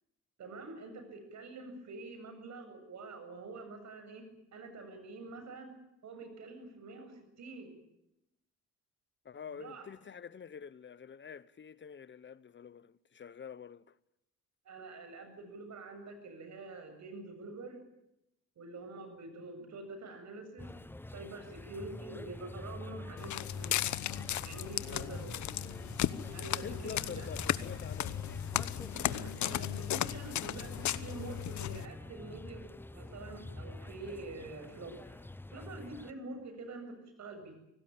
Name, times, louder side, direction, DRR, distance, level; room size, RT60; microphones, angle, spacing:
voice 1, 0.4-4.2 4.5-5.7 6.0-7.8 9.6-9.9 14.7-17.8 18.6-20.7 21.1-23.8 24.4-25.5 26.3-27.3 28.9-35.2 35.5-37.5, right 3 dB, 65° right, 7.7 m, -46 dB
voice 2, 9.2-14.0 24.8-25.2 26.6-28.4, left 7 dB, 40° left, 0.9 m, -47 dB
sound 1, 20.6-36.1, left 1 dB, 5° left, 0.9 m, -46 dB
Walk footsteps, 23.2-31.9, left 12 dB, 70° left, 1.1 m, -36 dB
25.0 x 18.5 x 9.0 m
cardioid pair, 90°, 30 cm